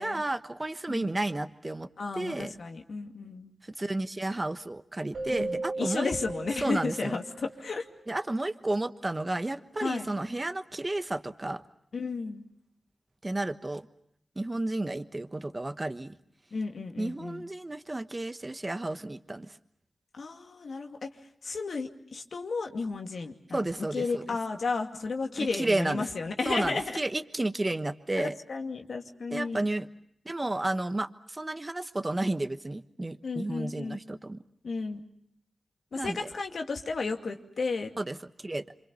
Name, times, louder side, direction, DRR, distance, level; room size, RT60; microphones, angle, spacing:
voice 1, 0.0-1.9 2.1-2.5 3.6-6.1 6.6-7.2 8.1-11.6 13.2-13.9 14.4-16.1 17.0-19.6 23.5-24.4 25.4-26.1 26.4-28.4 29.3-29.9 30.2-34.4 35.9-36.3 38.0-38.6, right 2 dB, 30° right, 10 dB, 1.2 m, -32 dB
voice 2, 2.0-3.6 5.3-7.8 9.8-10.1 11.9-12.4 16.5-17.5 20.1-21.1 21.4-23.6 23.9-27.0 28.2-29.6 33.2-34.0 34.6-35.0 35.9-37.9, left 4 dB, 80° left, 4 dB, 2.4 m, -33 dB
Keyboard (musical), 5.1-7.9, right 3 dB, 80° right, 5.7 m, -36 dB
27.5 x 25.5 x 6.9 m, 0.72 s
cardioid pair, 40°, 0 cm